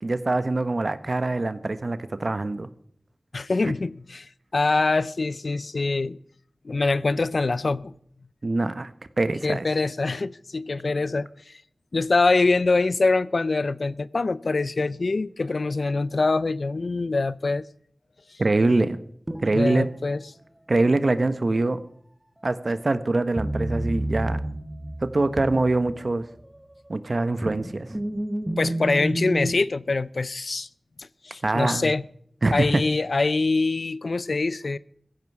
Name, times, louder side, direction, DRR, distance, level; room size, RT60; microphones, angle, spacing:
voice 1, 0.0-2.7 3.6-3.7 8.4-8.9 9.2-9.7 18.4-19.0 19.4-19.9 20.7-21.8 22.4-24.4 25.0-26.3 26.9-28.0 31.4-31.9 32.4-32.8, right 2 dB, 60° right, 1.2 m, -24 dB
voice 2, 3.3-6.2 6.6-7.9 9.4-11.6 11.9-17.7 19.5-20.2 28.6-30.7 31.0-32.0 32.5-34.8, left 3 dB, 75° left, 0.6 m, -24 dB
sound 1, 19.3-19.9 23.3-26.5 26.9-29.6, right 1 dB, 15° right, 1.5 m, -30 dB
17.0 x 15.0 x 4.8 m
wide cardioid pair, 45°, 0 cm